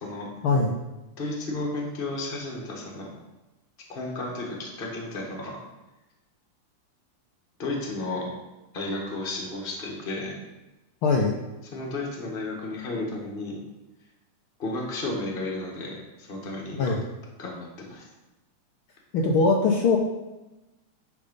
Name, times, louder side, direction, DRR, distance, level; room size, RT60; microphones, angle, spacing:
voice 1, 0.4-0.8 11.0-11.3 16.7-17.0 19.1-20.0, left 3 dB, 85° left, -1 dB, 1.1 m, -21 dB
voice 2, 1.2-3.1 3.9-5.6 7.6-8.3 8.7-10.4 11.7-13.6 14.6-16.9 17.4-18.0, left 2 dB, 35° left, -2 dB, 0.9 m, -33 dB
10.0 x 3.6 x 5.3 m, 1.0 s
omnidirectional pair, 3.4 m